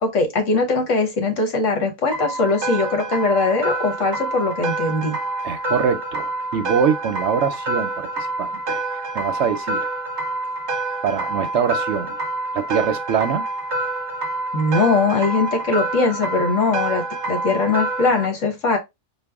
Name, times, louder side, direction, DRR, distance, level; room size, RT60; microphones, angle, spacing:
voice 1, 0.0-5.2 14.5-18.8, left 3 dB, 65° left, 1.5 m, -21 dB
sound 1, 2.1-18.3, right 2 dB, 40° right, 0.8 m, -27 dB
voice 2, 5.4-9.9 11.0-12.2 12.5-13.5, right 7 dB, 65° right, 0.8 m, -24 dB
4.7 x 2.3 x 3.4 m
omnidirectional pair, 1.4 m